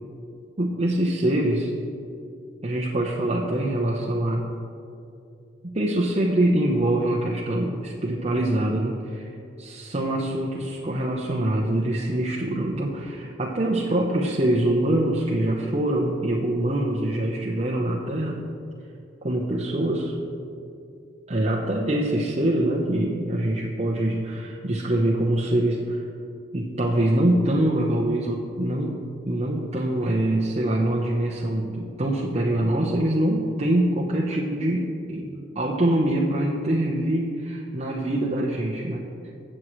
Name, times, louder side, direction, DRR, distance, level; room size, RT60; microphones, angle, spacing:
voice 1, 0.6-1.7 2.6-4.5 5.7-9.3 9.6-18.4 19.2-20.1 21.3-26.1 26.5-39.0, right 1 dB, 35° right, -3 dB, 1.0 m, -24 dB
21.5 x 7.6 x 3.2 m, 2.6 s
head